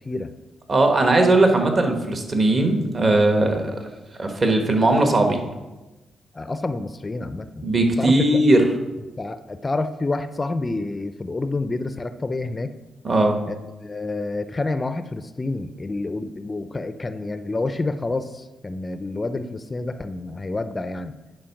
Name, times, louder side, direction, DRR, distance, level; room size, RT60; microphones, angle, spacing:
voice 1, 0.7-3.9 4.2-5.4 7.6-8.6 13.0-13.4, right 2 dB, 40° right, 4 dB, 1.3 m, -18 dB
voice 2, 6.3-7.7 8.0-8.4 9.2-12.7 13.5-21.2, left 2 dB, 25° left, 11 dB, 0.5 m, -28 dB
10.0 x 4.5 x 5.8 m, 1.1 s
cardioid pair, 95°, 0 cm